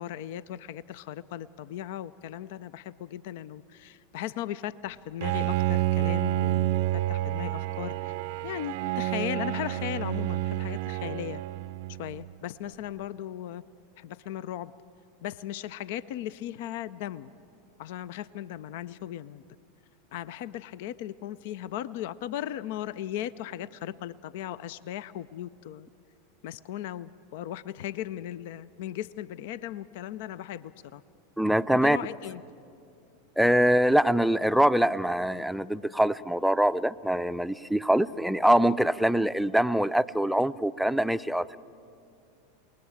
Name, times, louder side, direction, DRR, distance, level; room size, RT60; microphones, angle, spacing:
voice 1, 0.0-8.1 8.4-11.4 12.0-13.6 14.0-14.7 15.2-17.3 17.8-19.4 20.1-25.9 26.4-31.0 31.7-32.4, left 12 dB, 65° left, 18 dB, 0.5 m, -37 dB
Bowed string instrument, 5.2-12.3, right 15 dB, 65° right, 0.5 m, -29 dB
voice 2, 31.4-32.0 33.4-41.6, equal, ahead, 13 dB, 0.5 m, -24 dB
28.5 x 19.5 x 7.3 m, 2.6 s
hypercardioid pair, 95°, 0 cm